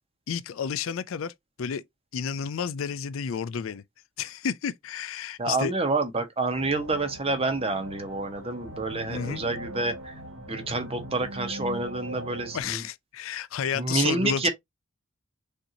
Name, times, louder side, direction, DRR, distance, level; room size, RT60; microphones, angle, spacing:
voice 1, 0.3-1.3 1.6-1.8 2.1-3.8 4.2-5.7 9.1-9.4 12.5-14.5, left 7 dB, 70° left, 0.4 m, -31 dB
voice 2, 5.4-10.1 10.5-12.8 13.7-14.5, right 3 dB, 30° right, 1.0 m, -28 dB
sound 1, 6.5-12.6, right 1 dB, 90° right, 1.9 m, -40 dB
6.4 x 2.7 x 2.9 m
head